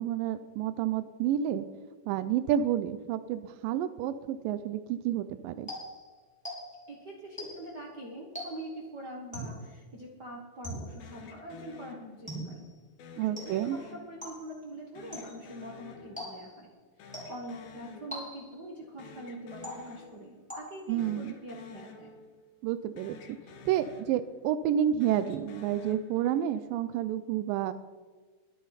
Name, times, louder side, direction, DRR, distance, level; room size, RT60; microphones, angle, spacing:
voice 1, 0.0-1.7 2.1-5.7 13.2-13.8 20.9-21.3 22.6-23.2 23.7-27.7, right 10 dB, 80° right, 11 dB, 2.0 m, -30 dB
sound 1, 5.7-6.9 7.4-7.8 8.3-8.8 9.3-9.7 10.6-11.1 12.3-12.7 13.4-13.8 14.2-14.6 15.1-15.5 16.2-16.7 17.1-17.6 18.1-18.7 19.6-20.1 20.5-21.0, equal, ahead, 4.6 m, -42 dB
voice 2, 6.9-12.6 13.2-16.7 17.0-22.1, right 1 dB, 55° right, -2 dB, 1.1 m, -44 dB
sound 2, 11.0-12.5 13.0-14.5 15.0-16.7 17.0-18.5 18.8-20.5 20.9-22.7 23.0-24.5 24.9-26.7, left 5 dB, 75° left, 3.1 m, -51 dB
23.0 x 9.3 x 4.1 m, 1.4 s
omnidirectional pair, 4.5 m